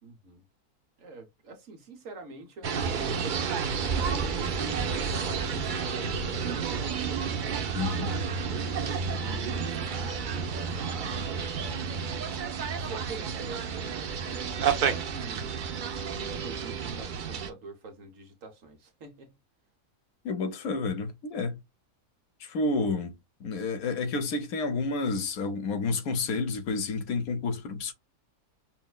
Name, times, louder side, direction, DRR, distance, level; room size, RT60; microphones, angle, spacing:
voice 1, 0.0-0.4 1.0-3.2 3.8-11.8 12.5-16.0 16.3-19.4, right 3 dB, 60° right, 1.3 m, -45 dB
sound 1, 2.6-17.5, right 6 dB, 85° right, 0.4 m, -31 dB
voice 2, 7.7-8.1 20.2-21.6 22.4-27.9, left 3 dB, 70° left, 1.2 m, -30 dB
5.5 x 2.1 x 2.2 m
omnidirectional pair, 1.6 m